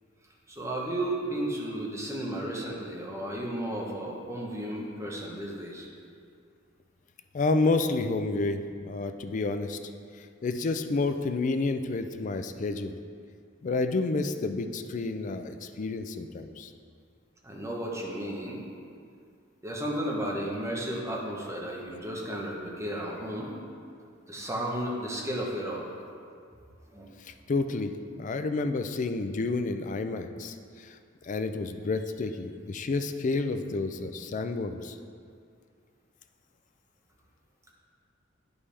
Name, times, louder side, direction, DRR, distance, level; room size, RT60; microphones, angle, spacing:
voice 1, 0.5-5.9 17.4-18.6 19.6-23.5 24.3-25.9 26.9-27.1, right 1 dB, 15° right, -3 dB, 1.0 m, -33 dB
voice 2, 7.3-9.8 10.2-13.0 13.6-16.7 27.2-27.9 28.2-31.0 31.2-35.0, left 3 dB, 40° left, 8 dB, 0.4 m, -30 dB
9.7 x 5.3 x 3.3 m, 2.3 s
head